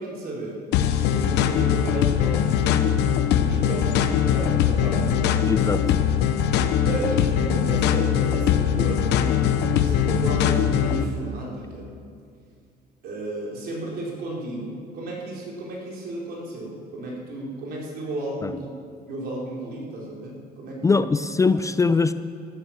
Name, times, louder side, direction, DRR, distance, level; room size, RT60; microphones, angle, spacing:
voice 1, 0.0-3.2 3.4-5.8 6.8-11.9 13.0-18.7 19.1-21.1 21.5-21.6, right 2 dB, 65° right, -3 dB, 4.3 m, -33 dB
sound 1, 0.7-11.0, left 9 dB, 85° left, 0.9 m, -21 dB
voice 2, 5.5-5.8 18.4-18.5 20.8-22.1, left 4 dB, 20° left, 12 dB, 0.4 m, -21 dB
13.5 x 11.5 x 7.4 m, 2.3 s
cardioid pair, 110°, 17 cm